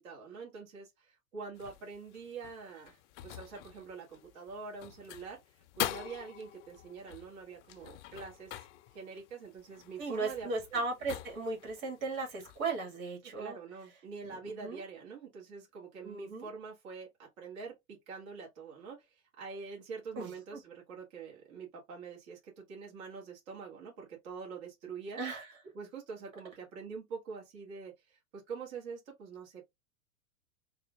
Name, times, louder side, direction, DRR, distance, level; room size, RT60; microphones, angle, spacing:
voice 1, 0.0-10.8 13.4-25.2 25.7-29.7, right 5 dB, 55° right, 1.8 m, -45 dB
sound 1, 1.5-12.8, left 13 dB, 60° left, 0.6 m, -45 dB
voice 2, 10.0-13.6 14.2-14.8 16.0-16.5 20.2-20.6 25.2-25.5, right 3 dB, 75° right, 2.0 m, -37 dB
3.6 x 2.4 x 3.4 m
hypercardioid pair, 120°, 41 cm